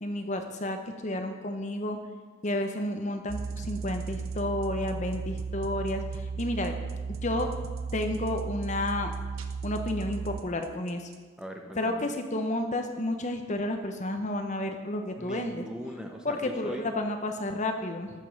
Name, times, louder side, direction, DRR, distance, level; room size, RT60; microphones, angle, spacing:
voice 1, 0.0-2.0 2.4-6.7 7.1-7.5 7.9-9.1 9.6-11.1 11.7-15.6 16.2-18.2, left 1 dB, 35° left, 6 dB, 0.8 m, -31 dB
sound 1, 3.3-11.1, right 5 dB, 70° right, 0.7 m, -35 dB
voice 2, 11.4-12.1 15.2-16.9, equal, 5° right, 2 dB, 0.7 m, -40 dB
13.5 x 5.3 x 6.1 m, 1.4 s
head